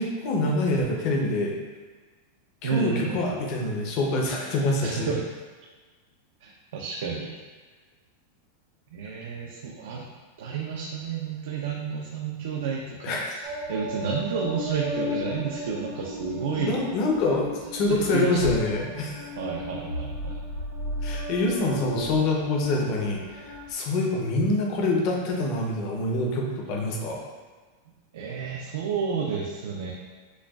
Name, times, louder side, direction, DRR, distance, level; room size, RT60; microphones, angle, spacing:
voice 1, 0.0-1.6 2.6-5.1 13.0-13.4 16.5-19.2 21.0-27.2, left 2 dB, 35° left, 0 dB, 0.6 m, -26 dB
voice 2, 2.6-3.4 4.8-5.2 6.4-7.3 8.9-10.1 10.4-16.7 17.9-18.4 19.4-20.3 28.1-29.9, right 6 dB, 70° right, -2 dB, 0.4 m, -31 dB
sound 1, 13.4-23.7, left 1 dB, 50° right, 0.8 m, -35 dB
6.2 x 2.2 x 2.3 m, 1.3 s
supercardioid pair, 175°, 0 cm